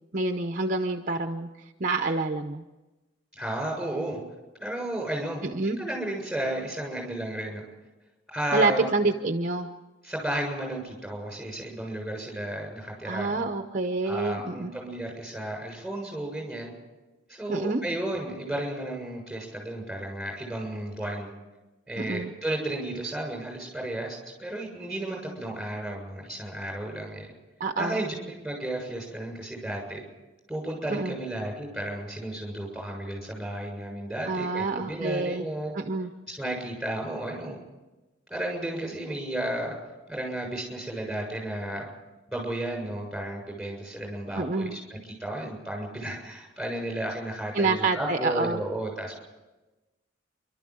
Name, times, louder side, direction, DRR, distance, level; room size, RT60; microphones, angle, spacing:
voice 1, 0.1-1.5 1.8-2.6 5.4-5.8 8.5-9.7 13.0-14.7 17.5-17.8 22.0-22.3 27.6-28.0 30.9-31.2 34.2-35.5 35.7-36.1 44.4-44.8 47.5-48.6, right 3 dB, 40° right, 6 dB, 0.9 m, -27 dB
voice 2, 3.3-4.2 4.6-5.5 5.8-7.6 8.3-8.9 10.0-13.4 14.0-16.7 17.3-21.3 21.9-27.3 27.8-30.0 30.5-35.7 36.3-37.6 38.3-39.8 40.1-41.9 42.3-49.2, right 1 dB, ahead, 2 dB, 7.1 m, -33 dB
29.0 x 13.0 x 7.9 m, 1.1 s
head